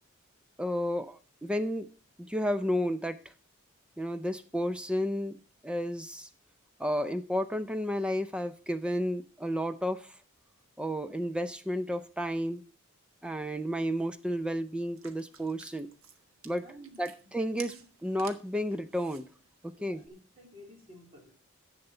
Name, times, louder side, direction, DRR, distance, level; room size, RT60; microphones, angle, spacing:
voice 1, 0.6-1.9 2.2-3.2 4.0-6.3 6.8-10.1 10.8-12.6 13.2-15.9 16.4-16.6 17.0-17.7 18.0-19.3 19.6-20.0, equal, 5° right, 11 dB, 0.5 m, -32 dB
sound 1, 15.0-20.1, right 6 dB, 75° right, 1.3 m, -52 dB
voice 2, 16.6-17.0 17.4-17.8 19.8-21.3, equal, 30° right, -1 dB, 3.6 m, -53 dB
10.5 x 8.0 x 4.3 m, 0.36 s
head